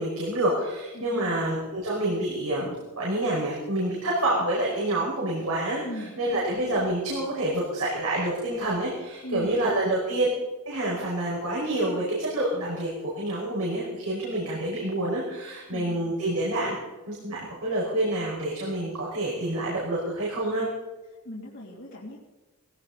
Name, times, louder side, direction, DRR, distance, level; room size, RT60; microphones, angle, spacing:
voice 1, 0.0-10.3 10.7-16.8 17.1-20.7, right 1 dB, 80° right, -5 dB, 5.2 m, -28 dB
voice 2, 0.9-1.4 5.8-6.1 9.2-9.5 15.7-16.0 21.2-22.2, left 1 dB, 55° left, -5 dB, 2.5 m, -38 dB
19.0 x 17.0 x 4.0 m, 1.2 s
head